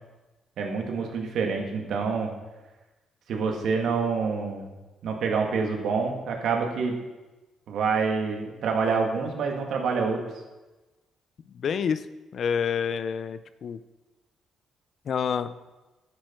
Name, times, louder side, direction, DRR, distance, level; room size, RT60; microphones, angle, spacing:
voice 1, 0.6-2.3 3.3-4.7 5.0-7.0 7.7-10.2, right 5 dB, 70° right, 2 dB, 2.2 m, -27 dB
voice 2, 11.6-12.0 12.3-13.8 15.1-15.5, left 7 dB, 55° left, 13 dB, 0.5 m, -28 dB
11.0 x 9.7 x 4.6 m, 1.1 s
cardioid pair, 90°, 0 cm